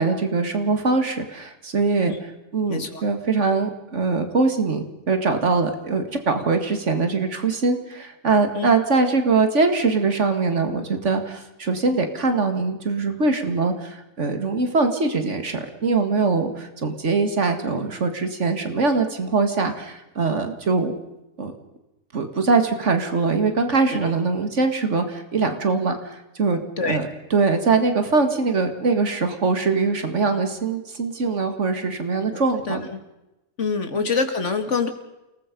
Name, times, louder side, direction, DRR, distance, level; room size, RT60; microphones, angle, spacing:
voice 1, 0.0-2.1 2.5-20.9 21.4-21.5 22.1-32.9 33.9-34.1, right 4 dB, 90° right, 7 dB, 2.3 m, -22 dB
voice 2, 2.7-3.0 8.5-8.7 24.0-24.1 26.8-27.0 32.3-32.4 32.7-33.0 33.6-34.9, left 5 dB, 85° left, 7 dB, 2.5 m, -25 dB
28.5 x 19.5 x 5.3 m, 0.95 s
omnidirectional pair, 1.2 m